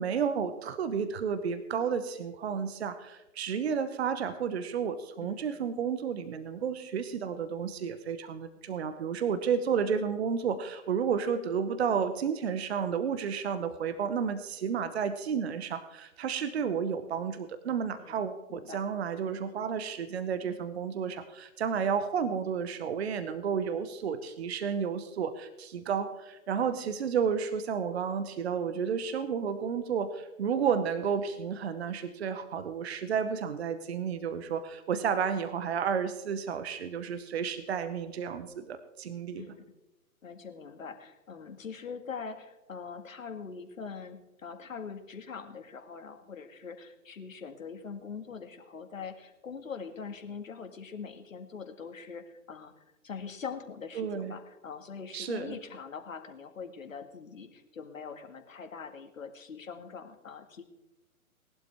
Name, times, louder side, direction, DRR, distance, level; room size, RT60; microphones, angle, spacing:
voice 1, 0.0-39.4 53.9-54.3 55.1-55.6, right 7 dB, 45° right, 11 dB, 1.0 m, -31 dB
voice 2, 5.2-5.6 18.0-18.2 18.5-18.8 26.6-26.9 39.4-39.7 40.2-52.7 53.0-60.6, left 5 dB, 65° left, 6 dB, 1.9 m, -43 dB
18.5 x 11.5 x 3.5 m, 1.0 s
figure-of-eight pair, 135°, 43 cm